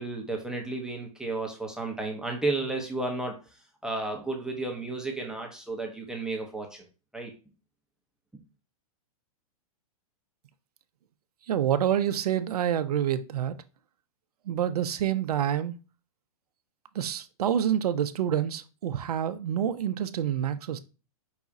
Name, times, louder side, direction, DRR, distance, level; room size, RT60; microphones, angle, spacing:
voice 1, 0.0-6.9 7.1-7.3, right 2 dB, 5° right, 0.6 m, -33 dB
voice 2, 11.5-13.6 14.4-15.8 16.9-20.8, right 10 dB, 80° right, 0.5 m, -27 dB
4.8 x 2.4 x 4.0 m
hypercardioid pair, 125°, 19 cm